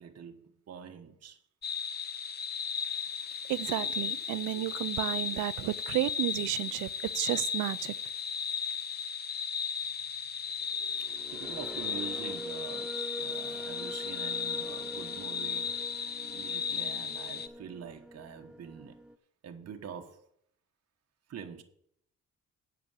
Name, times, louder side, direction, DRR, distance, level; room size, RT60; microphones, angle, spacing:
voice 1, 0.0-1.4 11.0-15.8 16.2-19.0 19.4-20.3 21.3-21.6, right 7 dB, 55° right, 1.2 m, -45 dB
sound 1, 1.6-17.5, left 6 dB, 35° left, 0.7 m, -35 dB
voice 2, 3.5-8.0, right 17 dB, 80° right, 0.5 m, -32 dB
sound 2, 10.7-19.1, equal, 5° right, 0.4 m, -44 dB
8.8 x 6.1 x 8.1 m
cardioid pair, 90°, 30 cm